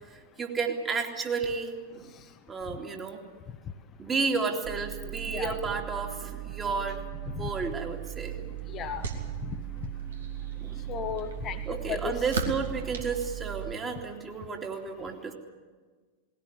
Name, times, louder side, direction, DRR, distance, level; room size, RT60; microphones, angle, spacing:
voice 1, 0.4-2.1 2.5-3.2 4.0-8.5 10.6-10.8 11.7-15.3, right 5 dB, 20° right, 2 dB, 2.8 m, -32 dB
sound 1, 4.6-13.7, right 15 dB, 40° right, 0.9 m, -38 dB
sound 2, 7.9-14.0, right 4 dB, 65° right, 2.6 m, -40 dB
voice 2, 8.7-9.1 10.9-12.1, left 8 dB, 30° left, 6 dB, 1.2 m, -34 dB
19.5 x 17.0 x 9.8 m, 1.4 s
figure-of-eight pair, 90°, 0 cm